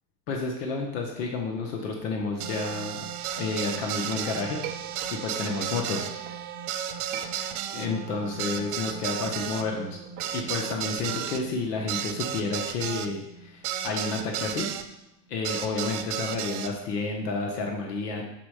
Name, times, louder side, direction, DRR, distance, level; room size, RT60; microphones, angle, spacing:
voice 1, 0.3-3.1 3.4-4.6 5.1-6.1 7.7-10.0 10.3-14.7 15.3-18.2, left 3 dB, 75° left, 2 dB, 1.1 m, -30 dB
sound 1, 2.4-14.9 15.4-16.7, right 9 dB, 60° right, 0.7 m, -34 dB
Chink clink, 3.7-6.4 6.9-7.9 8.3-12.4, right 9 dB, 20° right, 0.4 m, -45 dB
6.1 x 4.2 x 4.8 m, 0.87 s
supercardioid pair, 145°, 48 cm